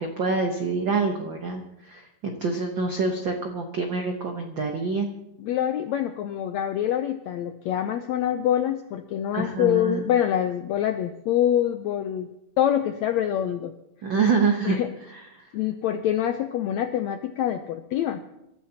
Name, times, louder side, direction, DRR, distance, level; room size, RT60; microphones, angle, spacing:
voice 1, 0.0-5.1 9.3-10.1 14.0-14.8 15.1-15.4, right 4 dB, 75° right, 3 dB, 1.0 m, -26 dB
voice 2, 5.4-12.3 12.6-13.7 14.6-14.9 15.5-18.2, left 10 dB, 85° left, 8 dB, 1.6 m, -25 dB
26.5 x 13.5 x 2.9 m, 0.86 s
omnidirectional pair, 3.9 m